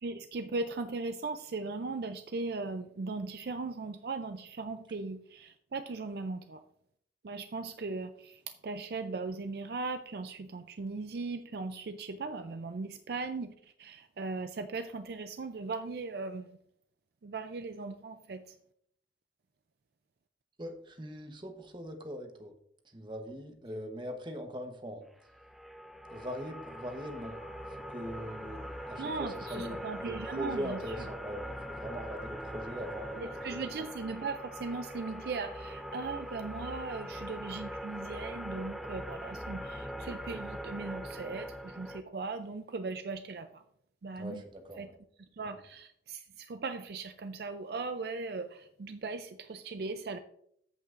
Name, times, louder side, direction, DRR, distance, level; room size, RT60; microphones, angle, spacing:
voice 1, 0.0-6.6 7.2-13.5 13.8-16.5 17.2-18.4 29.0-31.1 33.2-43.6 44.0-44.4 44.8-44.9 45.4-50.2, right 3 dB, 60° right, 9 dB, 0.4 m, -38 dB
voice 2, 20.6-22.5 22.8-25.0 26.1-27.4 27.7-28.6 28.9-33.7 44.2-45.0 45.4-45.6, equal, 25° right, 5 dB, 1.0 m, -41 dB
sound 1, 25.2-42.0, equal, ahead, 0.4 m, -42 dB
sound 2, 26.1-36.8, left 2 dB, 75° left, 2.3 m, -54 dB
14.0 x 5.5 x 2.5 m, 0.70 s
head